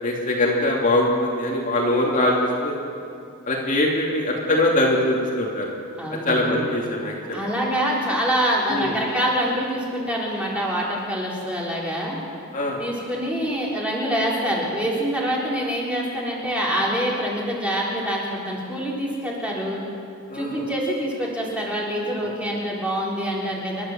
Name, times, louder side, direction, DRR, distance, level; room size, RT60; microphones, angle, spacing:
voice 1, 0.0-2.8 3.5-5.7 6.1-7.4 8.7-9.0 12.5-12.8 20.3-20.7, left 1 dB, 35° left, -2 dB, 2.8 m, -22 dB
voice 2, 6.0-6.6 7.3-12.2 12.8-19.8 20.3-23.8, equal, 5° right, -5 dB, 3.9 m, -25 dB
29.5 x 12.0 x 7.3 m, 2.4 s
head